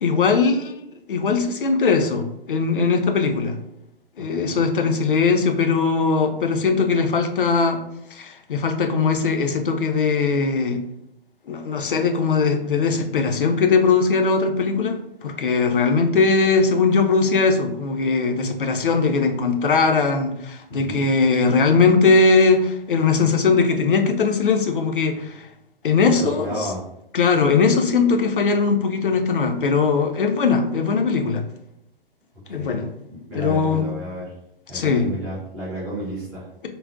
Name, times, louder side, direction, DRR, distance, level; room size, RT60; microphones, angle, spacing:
voice 1, 0.0-0.8 1.1-3.6 4.2-7.8 8.1-10.8 11.5-25.5 25.8-26.7 27.1-31.4 32.5-32.9 33.3-33.9 34.7-35.1, left 4 dB, 60° left, 5 dB, 0.5 m, -20 dB
voice 2, 4.2-4.6 20.7-21.1 26.2-26.8 32.6-34.3 34.7-36.5, right 1 dB, 5° right, -10 dB, 0.3 m, -32 dB
3.8 x 2.0 x 2.4 m, 0.81 s
figure-of-eight pair, 125°, 30 cm